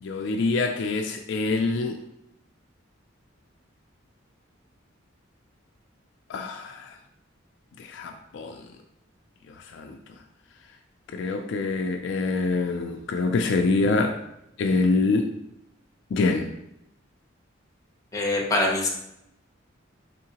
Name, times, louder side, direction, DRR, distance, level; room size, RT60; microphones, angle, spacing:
voice 1, 0.0-2.0 6.3-6.7 7.8-8.6 9.7-10.0 11.1-14.2 14.6-15.3 16.1-16.5, left 3 dB, 65° left, 4 dB, 0.3 m, -25 dB
voice 2, 18.1-18.9, left 2 dB, 15° left, -2 dB, 0.7 m, -23 dB
3.7 x 3.7 x 2.8 m, 0.81 s
head